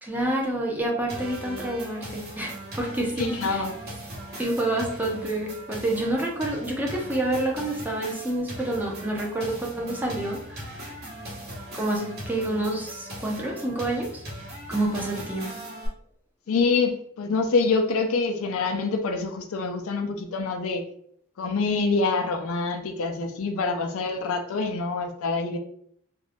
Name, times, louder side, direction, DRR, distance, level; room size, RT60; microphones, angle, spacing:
voice 1, 0.0-3.6 4.4-10.6 11.7-14.2 14.7-15.5, right 1 dB, 10° right, -1 dB, 0.5 m, -28 dB
sound 1, 1.1-15.9, equal, 50° right, 1.0 m, -39 dB
voice 2, 3.2-3.7 16.5-20.8 21.4-25.6, left 4 dB, 70° left, 5 dB, 0.4 m, -26 dB
2.5 x 2.2 x 3.3 m, 0.65 s
head